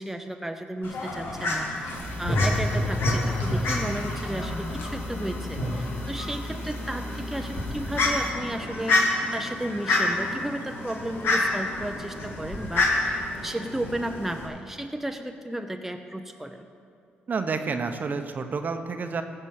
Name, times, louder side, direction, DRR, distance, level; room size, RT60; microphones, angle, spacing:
voice 1, 0.0-16.7, right 1 dB, 5° right, 5 dB, 0.7 m, -34 dB
Fowl, 0.8-14.5, left 2 dB, 65° left, 2.1 m, -29 dB
sound 1, 1.9-8.3, left 1 dB, 85° left, 2.3 m, -30 dB
voice 2, 17.3-19.2, right 4 dB, 45° right, 7 dB, 0.9 m, -29 dB
14.5 x 5.6 x 6.5 m, 2.2 s
cardioid pair, 75°, 4 cm